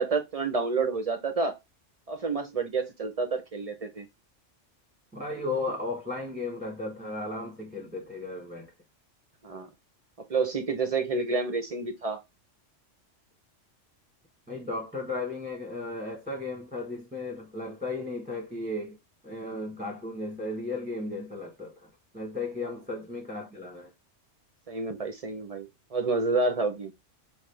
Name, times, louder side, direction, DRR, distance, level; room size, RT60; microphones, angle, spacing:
voice 1, 0.0-1.5 2.1-4.1 9.4-9.7 10.3-12.2 24.7-26.9, right 4 dB, 40° right, 0.5 m, -29 dB
voice 2, 5.1-8.7 14.5-19.0 19.2-21.9 22.1-23.9, left 2 dB, 10° right, 1.0 m, -35 dB
5.3 x 2.6 x 3.2 m
omnidirectional pair, 1.3 m